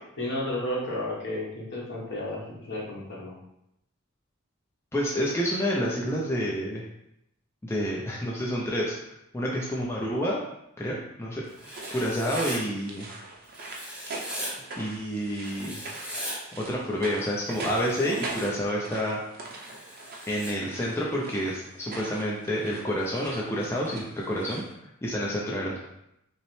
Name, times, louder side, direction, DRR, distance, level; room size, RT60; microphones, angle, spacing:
voice 1, 0.2-3.3, left 1 dB, 55° left, -4 dB, 1.2 m, -32 dB
voice 2, 4.9-6.8 7.6-10.4 10.8-11.4 11.9-13.1 14.4-15.8 16.6-19.2 20.3-24.6 25.0-25.8, equal, 10° left, -4 dB, 0.4 m, -29 dB
sound 1, 11.4-24.7, right 2 dB, 45° right, 0.6 m, -41 dB
Writing, 11.6-12.6 13.5-14.5 15.5-16.4 17.4-18.5 19.5-20.5, equal, 5° right, 0.9 m, -39 dB
5.4 x 2.0 x 3.1 m, 0.81 s
head